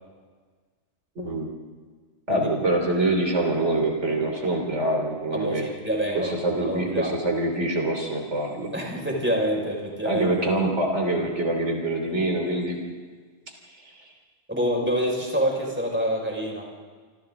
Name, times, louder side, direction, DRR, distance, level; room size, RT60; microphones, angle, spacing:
voice 1, 1.1-1.5 2.3-5.7 6.1-8.7 10.0-12.8 13.7-13.9, right 1 dB, 70° right, 2 dB, 3.5 m, -25 dB
voice 2, 5.3-7.1 8.7-10.3 14.5-16.7, equal, 10° right, -1 dB, 5.3 m, -27 dB
28.0 x 26.5 x 3.8 m, 1.5 s
omnidirectional pair, 1.2 m